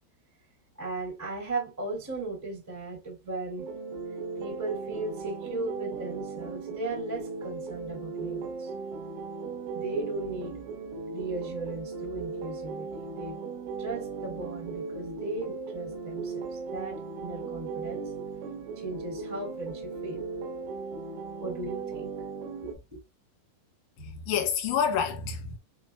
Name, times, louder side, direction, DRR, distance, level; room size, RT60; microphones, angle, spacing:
voice 1, 0.8-3.7 4.4-8.7 9.7-10.6 11.1-13.4 13.8-18.1 18.7-20.3 21.4-22.2 22.6-23.0, right 3 dB, 5° right, 1.9 m, -37 dB
sound 1, 3.6-22.8, right 4 dB, 85° right, 3.5 m, -37 dB
voice 2, 24.0-25.6, left 7 dB, 70° left, 3.3 m, -28 dB
7.4 x 3.0 x 2.3 m
omnidirectional pair, 5.5 m